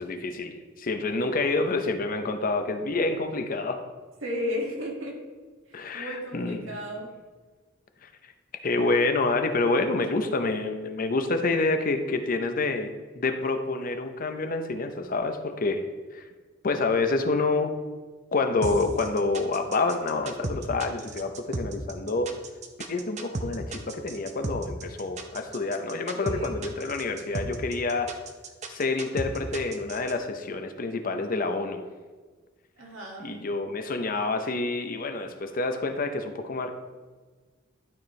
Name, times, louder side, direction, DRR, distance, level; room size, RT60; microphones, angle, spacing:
voice 1, 0.0-3.8 5.7-6.7 8.0-8.1 8.6-12.9 13.2-15.9 16.1-16.2 16.6-17.7 18.3-22.3 22.9-28.1 28.7-31.8 33.2-36.7, left 3 dB, 45° left, 7 dB, 0.6 m, -28 dB
voice 2, 4.2-5.2 5.7-7.1 26.1-26.7 32.8-33.4, left 1 dB, 80° right, -2 dB, 1.8 m, -34 dB
sound 1, 18.6-30.1, right 2 dB, 35° right, 0.6 m, -34 dB
12.0 x 4.3 x 3.2 m, 1.4 s
head